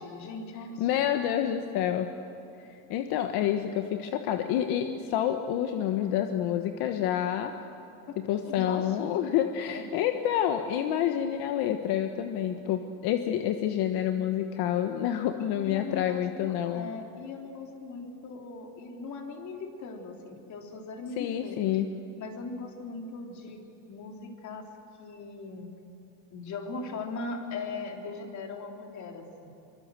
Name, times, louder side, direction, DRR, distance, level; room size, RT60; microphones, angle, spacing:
voice 1, 0.0-1.2 8.1-8.2 8.4-9.2 9.7-9.8 15.6-21.5 22.2-23.6 23.9-24.7 25.0-25.7 26.3-29.5, left 4 dB, 45° left, 3 dB, 3.4 m, -39 dB
voice 2, 0.8-2.1 2.6-7.5 8.2-16.9 21.2-22.0, left 10 dB, 75° left, 6 dB, 1.4 m, -28 dB
25.0 x 24.0 x 7.6 m, 2.9 s
cardioid pair, 150°, 38 cm